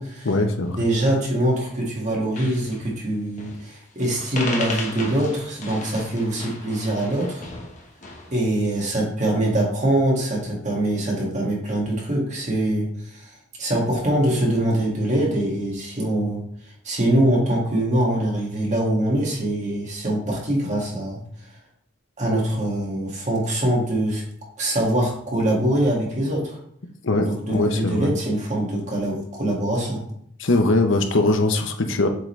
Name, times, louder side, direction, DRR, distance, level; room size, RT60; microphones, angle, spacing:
voice 1, 0.2-0.8 27.0-28.1 30.4-32.1, left 2 dB, 70° left, 5 dB, 0.8 m, -21 dB
voice 2, 0.8-7.5 8.3-12.9 13.1-13.3 13.6-16.4 16.8-21.2 22.2-24.2 24.6-26.6 27.2-30.0, right 1 dB, 35° right, -3 dB, 2.0 m, -23 dB
sound 1, 1.2-1.8 2.1-2.2 2.4-2.9 3.4-3.7 4.0-8.4, left 2 dB, 40° left, 1.2 m, -35 dB
7.7 x 3.9 x 3.2 m, 0.68 s
head